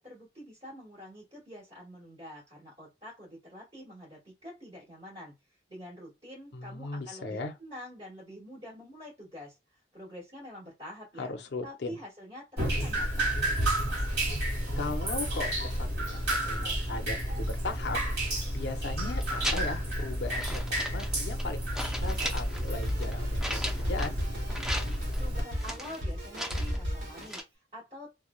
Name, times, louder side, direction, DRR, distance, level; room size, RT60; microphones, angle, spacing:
voice 1, 0.0-5.3 5.7-11.3 11.6-13.4 25.1-28.2, equal, 30° right, 1.4 m, -46 dB
voice 2, 6.5-7.5 11.2-12.0 14.8-24.1, left 3 dB, 60° left, 0.5 m, -38 dB
Drip, 12.6-25.4, right 1 dB, 55° right, 1.4 m, -31 dB
sound 1, 19.1-19.9 20.3-21.5 21.8-24.2 24.5-25.2 25.6-26.8 27.2-27.4, equal, 5° right, 0.4 m, -37 dB
Drum kit, 22.0-27.4, equal, 75° right, 1.0 m, -36 dB
3.0 x 2.1 x 2.2 m
head